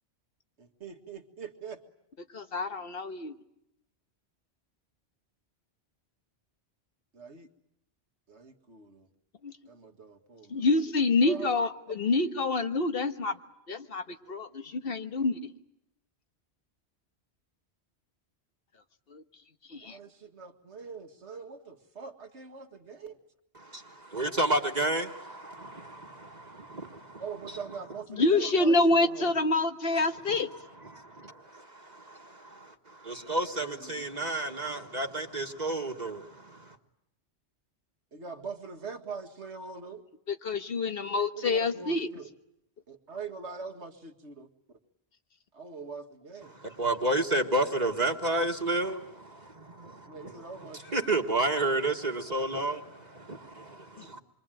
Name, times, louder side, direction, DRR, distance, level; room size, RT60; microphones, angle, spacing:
voice 1, 0.6-1.8 7.1-7.5 8.3-9.1 9.7-10.7 11.2-11.5 19.8-23.2 27.2-29.3 33.4-34.1 38.1-40.0 41.3-42.3 42.9-44.5 45.5-46.6 50.1-51.1, right 5 dB, 90° right, 2.2 m, -43 dB
voice 2, 2.3-3.3 9.4-9.5 10.5-13.4 13.7-15.5 19.1-19.2 19.7-20.0 28.1-30.5 40.3-42.1 54.0-54.2, left 3 dB, 60° left, 1.6 m, -27 dB
voice 3, 23.6-27.2 30.5-30.6 30.9-36.8 46.6-50.3 50.9-54.2, right 2 dB, 40° right, 1.7 m, -31 dB
27.5 x 24.0 x 9.1 m
omnidirectional pair, 1.1 m